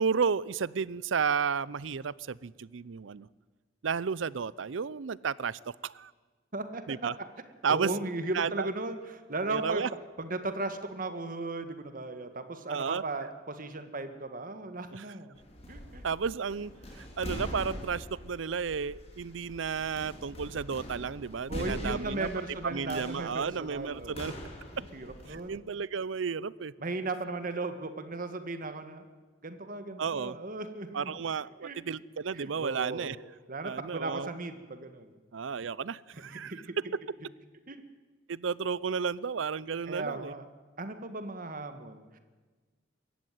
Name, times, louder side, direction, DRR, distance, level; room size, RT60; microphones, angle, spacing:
voice 1, 0.0-3.3 3.8-6.1 6.9-7.1 7.6-7.9 8.3-8.7 9.5-9.9 12.7-13.0 14.9-15.0 16.0-22.3 22.6-24.3 25.3-26.7 30.0-30.4 30.9-33.2 33.6-34.3 35.3-36.5 38.3-40.3, right 6 dB, 80° right, 21 dB, 0.6 m, -32 dB
voice 2, 7.7-9.9 10.2-15.4 15.7-16.0 21.5-24.4 24.7-25.6 26.8-29.0 29.4-31.1 31.6-31.8 32.3-33.2 33.5-35.1 36.4-36.7 37.7-37.8 39.9-40.5 40.8-42.2, right 2 dB, 45° right, 9 dB, 1.7 m, -36 dB
sound 1, 15.3-25.4, equal, 35° left, 4.4 m, -43 dB
23.5 x 14.5 x 9.3 m, 1.4 s
head